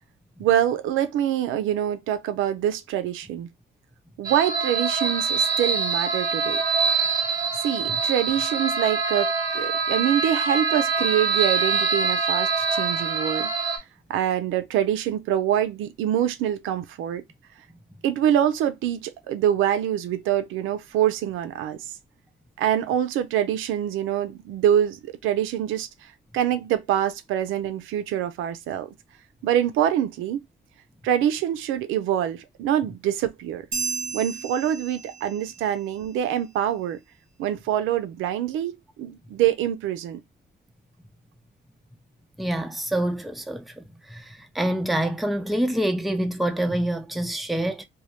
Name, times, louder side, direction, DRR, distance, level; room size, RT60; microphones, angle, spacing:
voice 1, 0.4-3.5 4.2-6.6 7.6-13.5 14.1-17.2 18.0-21.8 22.6-25.9 26.3-28.9 29.4-30.4 31.0-33.7 34.1-37.0 37.4-40.2, right 10 dB, 90° right, 0.5 m, -25 dB
sound 1, 4.2-13.8, right 4 dB, 20° right, 1.0 m, -24 dB
sound 2, 33.7-35.6, right 5 dB, 40° right, 0.6 m, -32 dB
voice 2, 42.4-47.8, right 1 dB, ahead, 0.4 m, -26 dB
2.3 x 2.0 x 3.0 m
cardioid pair, 90°, 20 cm